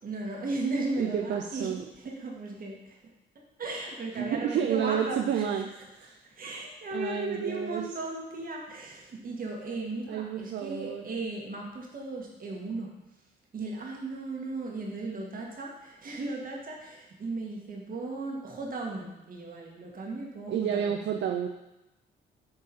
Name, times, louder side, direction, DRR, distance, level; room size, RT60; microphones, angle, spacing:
voice 1, 0.0-3.0 3.6-5.5 6.2-12.9 13.5-21.0, right 2 dB, 45° right, -1 dB, 2.1 m, -36 dB
voice 2, 1.0-1.8 4.1-5.7 5.9-6.2 6.9-7.9 10.1-11.1 20.5-21.5, right 8 dB, 65° right, 4 dB, 0.6 m, -30 dB
8.4 x 4.8 x 4.6 m, 0.96 s
cardioid pair, 90°, 20 cm